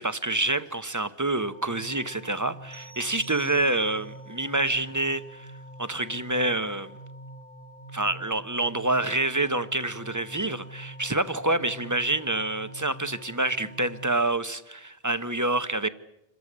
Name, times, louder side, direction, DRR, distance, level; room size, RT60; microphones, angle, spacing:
voice 1, 0.0-5.5 5.8-6.9 7.9-15.9, right 2 dB, 20° right, 12 dB, 0.9 m, -27 dB
sound 1, 1.4-14.1, right 1 dB, 65° left, 1.4 m, -45 dB
sound 2, 2.7-4.2, right 3 dB, 85° right, 2.4 m, -51 dB
27.5 x 14.0 x 9.8 m, 0.90 s
omnidirectional pair, 1.0 m